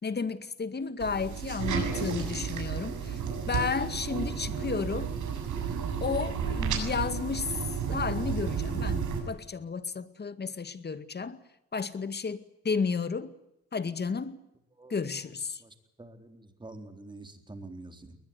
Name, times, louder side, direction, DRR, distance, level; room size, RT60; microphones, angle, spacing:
voice 1, 0.0-3.2 3.5-5.1 6.0-7.5 7.9-11.4 11.7-13.3 13.7-14.4 14.9-15.6, left 5 dB, 35° left, 2.0 m, -32 dB
sound 1, 1.0-9.2, right 6 dB, 75° right, 7.0 m, -32 dB
voice 2, 1.4-3.5 14.8-15.3 15.6-18.2, right 2 dB, 15° right, 4.0 m, -48 dB
21.0 x 21.0 x 9.7 m
cardioid pair, 90°, 30 cm